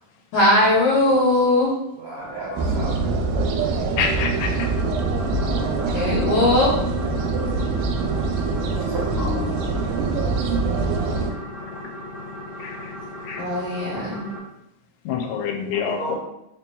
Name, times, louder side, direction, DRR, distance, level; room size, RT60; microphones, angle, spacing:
voice 1, 0.3-1.7 5.4-6.7 13.4-14.2, left 1 dB, 70° left, -8 dB, 2.2 m, -20 dB
voice 2, 2.0-3.2 8.9-9.7 15.7-16.2, right 2 dB, 65° right, -9 dB, 1.9 m, -33 dB
sound 1, 2.2-3.6 4.0-14.4, left 1 dB, 50° left, 2.0 m, -37 dB
sound 2, 2.6-11.3, right 3 dB, 80° right, 2.0 m, -24 dB
voice 3, 4.0-4.7 12.6-12.9 13.2-13.4 15.1-16.2, left 6 dB, 90° left, 3 dB, 2.1 m, -27 dB
4.6 x 2.9 x 2.2 m, 0.83 s
omnidirectional pair, 3.6 m